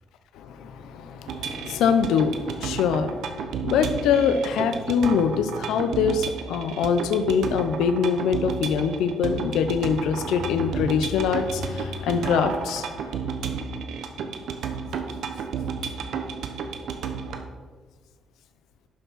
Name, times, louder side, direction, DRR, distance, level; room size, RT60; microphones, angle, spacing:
voice 1, 0.3-13.2, left 6 dB, 85° left, 9 dB, 0.7 m, -24 dB
sound 1, 1.3-17.4, right 6 dB, 75° right, 0.9 m, -32 dB
11.5 x 5.8 x 4.2 m, 1.4 s
cardioid pair, 90°, 0 cm